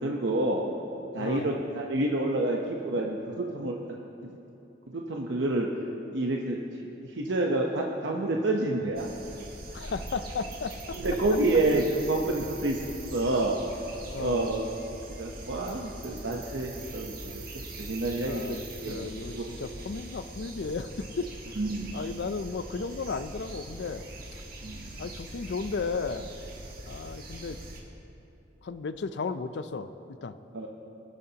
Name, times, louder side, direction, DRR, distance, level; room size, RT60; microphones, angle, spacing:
voice 1, 0.0-0.7 1.1-3.7 4.9-5.7 6.1-6.6 7.0-9.1 10.9-12.8 13.1-13.6 14.2-14.7 15.2-19.5 21.6-22.0 24.6-24.9 30.5-30.7, right 2 dB, 90° right, 0 dB, 0.8 m, -28 dB
voice 2, 1.2-1.6 9.7-11.0 14.1-14.5 18.2-21.3 21.9-24.0 25.0-26.3 26.9-27.6 28.6-30.4, left 4 dB, 70° left, 11 dB, 0.5 m, -34 dB
sound 1, 8.9-27.8, right 2 dB, 55° right, 1.6 m, -42 dB
21.0 x 11.0 x 2.9 m, 2.9 s
head